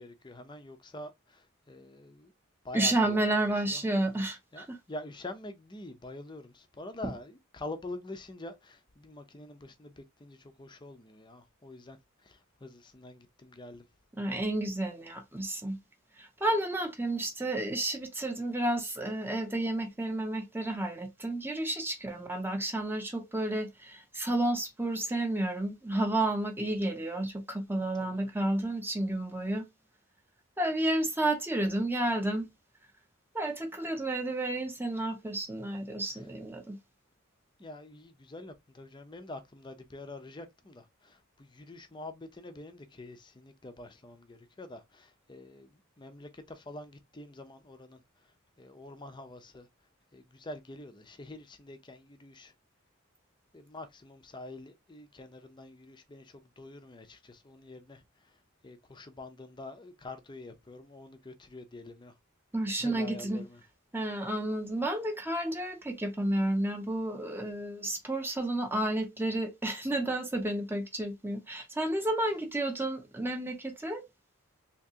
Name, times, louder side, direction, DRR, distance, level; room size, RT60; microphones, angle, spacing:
voice 1, 0.0-2.3 2.6-3.2 3.6-3.8 4.5-13.9 22.2-22.4 28.0-28.3 36.1-36.2 37.6-48.3 48.6-49.7 50.1-52.5 53.5-58.4 58.6-62.1 62.8-63.6, left 2 dB, 20° left, 0.6 m, -46 dB
voice 2, 2.7-4.8 14.2-15.8 16.2-29.6 30.6-32.5 33.3-36.8 62.5-63.4 63.9-74.0, right 1 dB, 10° right, 0.7 m, -31 dB
3.5 x 2.9 x 2.7 m
head